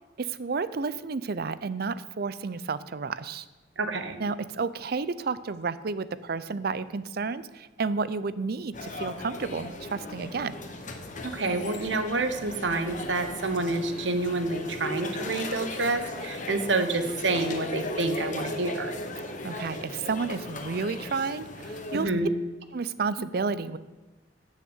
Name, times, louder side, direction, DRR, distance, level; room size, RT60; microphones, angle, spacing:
voice 1, 0.2-3.5 4.2-10.6 19.4-22.1 22.7-23.8, right 4 dB, 60° right, 15 dB, 0.5 m, -31 dB
voice 2, 3.8-4.2 11.2-18.9 21.9-22.3 23.2-23.3, right 2 dB, 80° right, 8 dB, 1.1 m, -28 dB
sound 1, 8.7-22.1, left 2 dB, 45° left, 1.1 m, -37 dB
10.0 x 6.5 x 8.0 m, 1.1 s
head